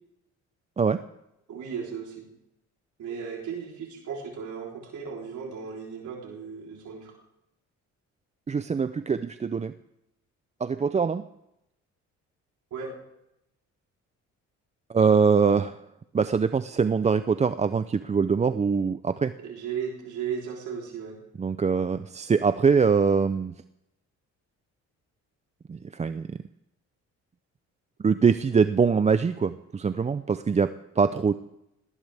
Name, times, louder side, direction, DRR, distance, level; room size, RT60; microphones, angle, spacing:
voice 1, 1.5-2.3 3.0-7.1 12.7-12.9 19.4-21.2, right 7 dB, 75° right, -1 dB, 3.6 m, -35 dB
voice 2, 8.5-9.7 10.6-11.2 14.9-15.8 16.1-19.3 21.4-23.5 25.7-26.4 28.0-31.3, right 5 dB, 25° right, 12 dB, 0.5 m, -23 dB
18.5 x 18.0 x 3.5 m, 0.83 s
cardioid pair, 90°, 30 cm